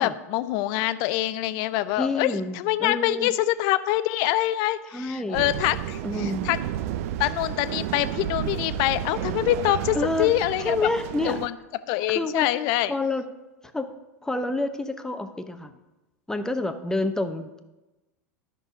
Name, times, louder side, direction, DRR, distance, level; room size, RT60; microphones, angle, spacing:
voice 1, 0.0-6.6 7.2-10.8 11.2-11.5 11.9-12.9, left 15 dB, 50° left, 14 dB, 0.6 m, -25 dB
voice 2, 2.0-3.3 4.9-5.5 6.0-6.5 9.9-10.3 10.6-11.4 12.1-12.5 12.9-13.2 13.7-13.9 14.2-15.7 16.3-17.6, left 2 dB, 5° left, 8 dB, 0.8 m, -28 dB
sound 1, 5.3-11.5, right 11 dB, 60° right, 0.5 m, -32 dB
12.0 x 6.1 x 5.2 m, 1.0 s
hypercardioid pair, 90°, 9 cm